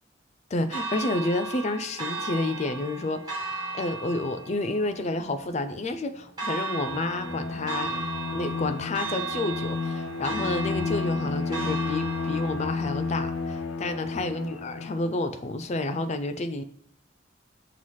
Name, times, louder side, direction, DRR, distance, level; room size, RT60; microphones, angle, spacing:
voice 1, 0.5-3.4 3.7-8.0 8.3-16.6, left 2 dB, 35° left, 10 dB, 0.4 m, -30 dB
Church bell, 0.7-14.7, right 3 dB, 20° right, 1.5 m, -36 dB
Bowed string instrument, 6.7-15.2, left 4 dB, 85° left, 0.6 m, -32 dB
5.8 x 3.2 x 5.5 m, 0.64 s
head